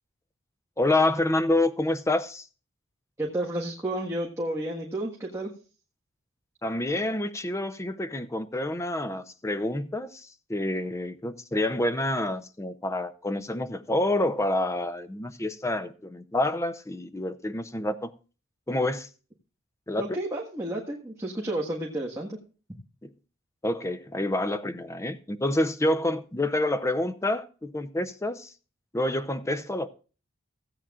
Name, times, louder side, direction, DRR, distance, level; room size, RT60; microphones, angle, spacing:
voice 1, 0.8-2.5 6.6-18.1 18.7-19.1 19.9-20.0 23.0-23.1 23.6-28.5 28.9-29.9, left 1 dB, 15° left, 0.6 m, -28 dB
voice 2, 3.2-5.5 20.0-22.4, right 1 dB, 15° right, 1.6 m, -31 dB
16.0 x 8.8 x 2.4 m
head